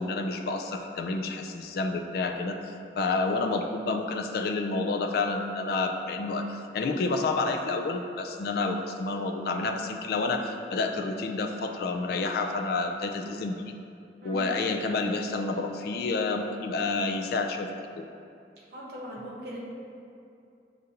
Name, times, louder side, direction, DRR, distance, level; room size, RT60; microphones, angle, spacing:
voice 1, 0.0-13.6 14.2-17.7 18.0-18.1, left 3 dB, 60° left, 5 dB, 0.3 m, -29 dB
voice 2, 14.2-14.6 18.7-19.6, equal, 65° right, -6 dB, 0.8 m, -40 dB
6.3 x 2.5 x 2.8 m, 2.5 s
head